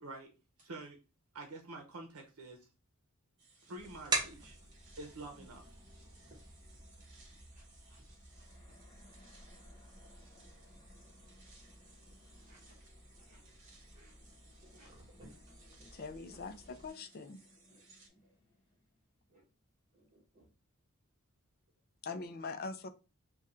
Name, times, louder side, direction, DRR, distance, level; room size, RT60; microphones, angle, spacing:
voice 1, 0.0-0.3 0.6-1.0 1.3-2.7 3.6-4.6 5.0-5.8, right 2 dB, 80° right, 2 dB, 0.8 m, -47 dB
sound 1, 3.4-18.1, right 3 dB, 60° right, 1.2 m, -64 dB
sound 2, 3.8-16.9, right 3 dB, 20° right, 0.8 m, -46 dB
voice 2, 7.6-8.0 8.3-8.4 9.3-9.4 12.4-12.7 13.2-13.4 13.9-14.1 14.7-14.9 15.2-15.4 17.7-17.8 19.3-19.4 19.9-20.5, right 1 dB, 35° right, -4 dB, 1.2 m, -62 dB
sound 3, 8.3-19.7, left 2 dB, 20° left, 1.4 m, -66 dB
voice 3, 15.9-17.4 22.0-22.9, left 4 dB, 45° left, 8 dB, 0.4 m, -42 dB
3.6 x 2.3 x 4.2 m, 0.31 s
head